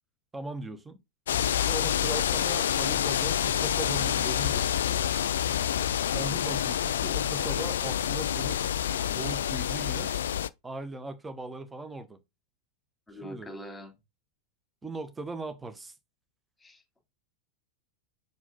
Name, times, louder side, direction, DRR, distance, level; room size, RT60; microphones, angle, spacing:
voice 1, 0.3-1.0 1.7-5.1 6.1-8.6 9.1-10.2 10.6-12.2 13.2-13.5 14.8-15.9, right 2 dB, 10° right, 1.1 m, -39 dB
sound 1, 1.3-10.5, left 10 dB, 65° left, 0.3 m, -28 dB
voice 2, 13.1-13.9 16.6-16.8, equal, 10° left, 2.8 m, -43 dB
5.3 x 4.9 x 3.8 m
figure-of-eight pair, 90°, 0 cm